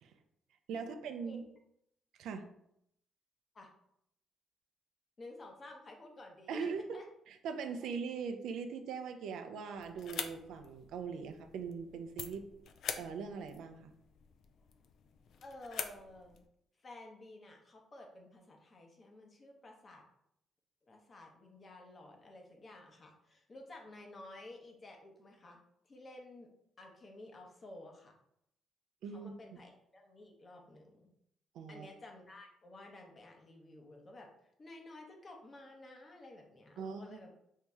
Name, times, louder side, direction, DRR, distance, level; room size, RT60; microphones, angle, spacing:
voice 1, 0.7-1.4 2.2-2.4 6.5-6.8 7.4-12.5 13.0-13.9 29.0-29.6 31.5-31.9 36.8-37.3, right 5 dB, 80° right, 6 dB, 0.4 m, -41 dB
voice 2, 5.2-6.7 6.9-7.0 15.4-16.4 16.8-20.0 20.8-25.6 25.8-26.5 26.8-28.1 29.1-31.1 31.7-34.3 34.6-37.3, left 2 dB, 35° left, 2 dB, 0.8 m, -53 dB
sound 1, 9.7-16.5, left 7 dB, 70° left, 0.3 m, -46 dB
3.0 x 2.7 x 3.4 m, 0.75 s
cardioid pair, 90°, 0 cm